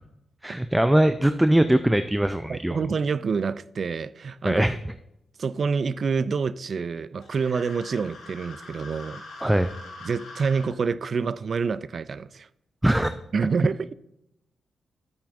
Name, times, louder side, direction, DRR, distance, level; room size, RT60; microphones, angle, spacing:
voice 1, 0.4-2.8 4.4-4.8 9.4-9.7 12.8-13.1, right 1 dB, 10° right, 0.5 m, -21 dB
voice 2, 2.5-4.6 5.4-9.2 10.0-12.5 13.3-13.9, right 5 dB, 60° right, 0.4 m, -27 dB
sound 1, 7.2-10.7, left 2 dB, 75° left, 2.6 m, -43 dB
11.0 x 8.4 x 2.6 m
supercardioid pair, 45°, 0 cm